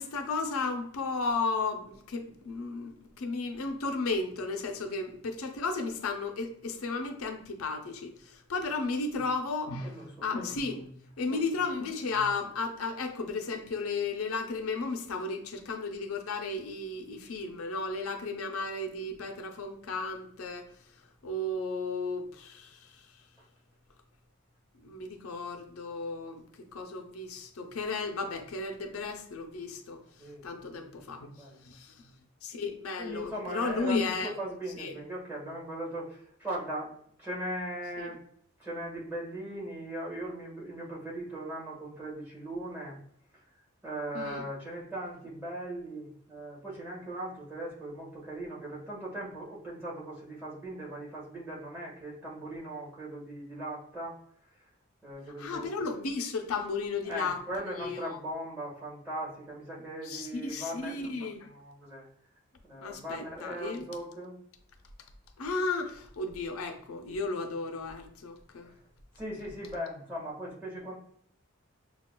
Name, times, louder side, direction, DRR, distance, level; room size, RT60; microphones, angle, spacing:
voice 1, 0.0-9.9 10.2-20.7 21.2-23.1 24.8-30.0 30.4-31.3 31.6-32.1 32.4-34.3 34.8-34.9 38.0-38.1 44.1-44.4 55.4-57.4 57.7-58.2 60.0-61.5 62.8-63.9 65.4-68.7, left 3 dB, 90° left, 0.5 m, -34 dB
voice 2, 9.8-10.4 11.3-11.4 23.4-23.5 30.2-31.6 33.0-38.2 38.6-43.0 43.3-43.4 43.8-54.2 54.5-54.7 55.0-56.0 57.1-62.1 62.6-64.4 68.6-68.8 69.1-70.9, right 1 dB, 10° right, 1.4 m, -39 dB
6.3 x 2.3 x 2.2 m
head